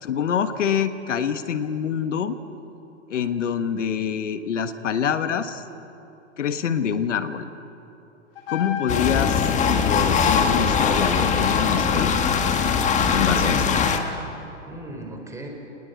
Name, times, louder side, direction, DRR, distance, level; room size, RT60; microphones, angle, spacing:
voice 1, 0.0-2.4 3.1-5.6 6.4-7.5 8.5-12.2 13.1-13.7, left 8 dB, 75° left, 10 dB, 1.5 m, -26 dB
Trumpet, 8.4-14.2, left 10 dB, 50° left, 2.5 m, -34 dB
sound 1, 8.9-14.0, left 6 dB, 20° left, 1.8 m, -21 dB
voice 2, 13.3-13.9 14.4-15.5, right 1 dB, 10° right, 2 dB, 4.3 m, -37 dB
27.5 x 20.0 x 8.2 m, 3.0 s
hypercardioid pair, 125°, 37 cm